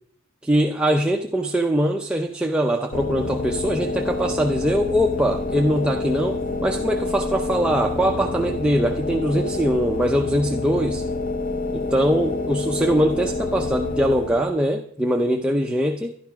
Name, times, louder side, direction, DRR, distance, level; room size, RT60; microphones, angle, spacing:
voice 1, 0.4-11.1 11.7-16.1, equal, 5° right, 2 dB, 0.5 m, -22 dB
sound 1, 2.9-14.6, left 3 dB, 35° left, 0.8 m, -28 dB
12.5 x 11.5 x 5.8 m, 0.67 s
head